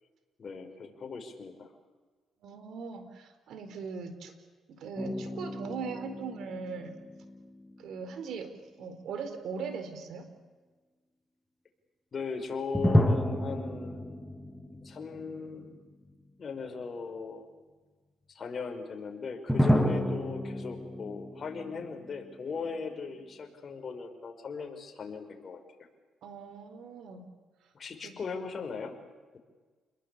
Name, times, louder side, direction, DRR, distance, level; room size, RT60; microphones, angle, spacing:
voice 1, 0.4-1.7 12.1-14.2 14.7-15.8 16.4-17.5 18.3-25.6 27.7-29.0, left 5 dB, 45° left, 4 dB, 5.4 m, -38 dB
voice 2, 2.4-4.3 4.7-6.9 7.8-8.5 8.8-10.3 26.2-27.2 28.0-28.1, right 5 dB, 75° right, 9 dB, 4.4 m, -40 dB
sound 1, 5.0-8.2 12.7-15.8 16.1-16.2 19.5-22.8, equal, ahead, 2.8 m, -31 dB
29.0 x 21.5 x 8.7 m, 1.4 s
cardioid pair, 90°, 0 cm